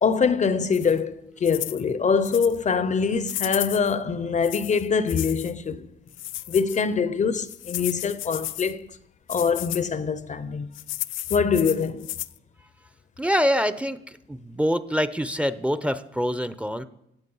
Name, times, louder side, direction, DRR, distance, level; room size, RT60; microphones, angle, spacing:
voice 1, 0.0-5.9 6.5-8.9 9.3-10.7 11.3-12.1, left 5 dB, 40° left, 0.6 m, -24 dB
sound 1, 0.7-1.0 1.4-1.8 2.2-2.6 3.3-3.9 4.4-5.5 6.1-6.8 7.5-8.7 9.3-9.8 10.7-12.4, left 15 dB, 80° left, 0.4 m, -33 dB
voice 2, 13.2-14.0 14.3-16.8, equal, 5° right, 0.6 m, -25 dB
16.0 x 7.5 x 5.5 m
cardioid pair, 90°, 20 cm